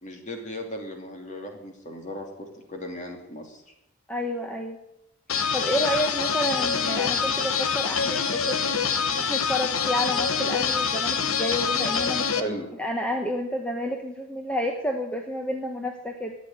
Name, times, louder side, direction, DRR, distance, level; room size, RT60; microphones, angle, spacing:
voice 1, 0.0-3.7 12.3-12.7, equal, 35° left, 3 dB, 2.8 m, -37 dB
voice 2, 4.1-4.8 5.5-8.6 9.1-16.4, equal, 5° left, 2 dB, 1.1 m, -30 dB
sound 1, 5.3-12.4, left 6 dB, 75° left, 1.1 m, -25 dB
13.5 x 9.9 x 9.1 m, 0.85 s
head